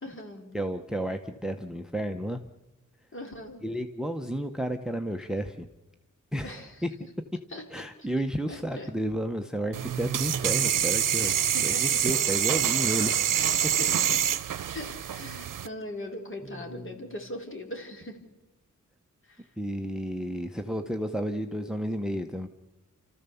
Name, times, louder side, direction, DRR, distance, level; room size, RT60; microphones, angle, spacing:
voice 1, 0.0-0.5 3.1-3.7 6.4-6.8 7.5-7.7 8.0-8.1 8.5-8.9 11.2-12.2 13.8-14.2 14.7-18.2 19.2-19.5, left 1 dB, 40° left, 3 dB, 3.4 m, -40 dB
voice 2, 0.5-2.4 3.6-5.7 6.3-6.5 6.8-6.9 7.7-11.3 11.6-13.3 16.5-17.1 19.6-22.5, equal, ahead, 8 dB, 0.8 m, -32 dB
sound 1, 9.7-15.7, right 9 dB, 80° right, 0.7 m, -26 dB
30.0 x 14.0 x 7.0 m, 1.0 s
wide cardioid pair, 145°, 31 cm